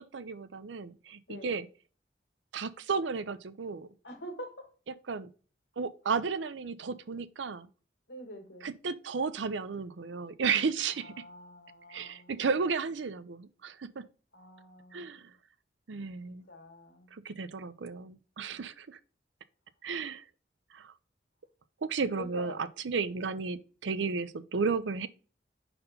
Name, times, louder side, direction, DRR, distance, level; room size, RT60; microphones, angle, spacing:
voice 1, 0.0-1.7 2.5-3.9 5.1-5.3 5.8-7.7 8.6-11.1 11.9-14.0 14.9-15.3 15.9-16.5 17.1-19.0 19.8-20.2 20.7-20.9 21.8-22.5 22.8-25.1, right 5 dB, 85° right, 0.6 m, -33 dB
voice 2, 1.3-1.6 4.0-4.7 6.1-6.2 8.1-8.7 10.9-12.5 14.3-15.3 16.3-17.1 22.1-22.6 23.2-23.5, equal, 85° left, 1.9 m, -47 dB
5.6 x 4.2 x 5.2 m
head